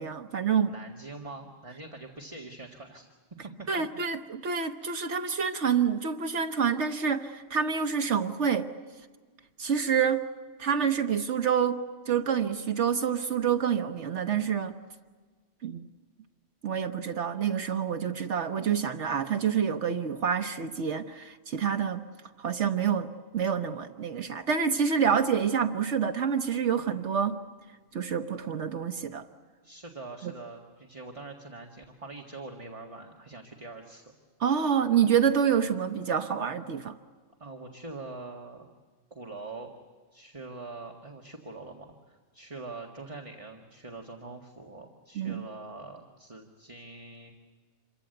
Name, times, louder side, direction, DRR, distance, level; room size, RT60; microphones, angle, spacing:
voice 1, 0.0-0.7 3.7-8.7 9.6-10.2 10.6-14.7 15.6-15.9 16.6-22.0 22.4-27.4 27.9-29.2 30.2-30.3 34.4-37.0 45.2-45.4, right 7 dB, 75° right, 8 dB, 1.3 m, -27 dB
voice 2, 0.6-3.1 3.6-3.7 29.6-34.0 37.4-38.7 39.1-39.7 40.1-47.3, right 3 dB, 30° right, 2 dB, 1.9 m, -44 dB
28.0 x 23.5 x 8.0 m, 1.4 s
omnidirectional pair, 1.2 m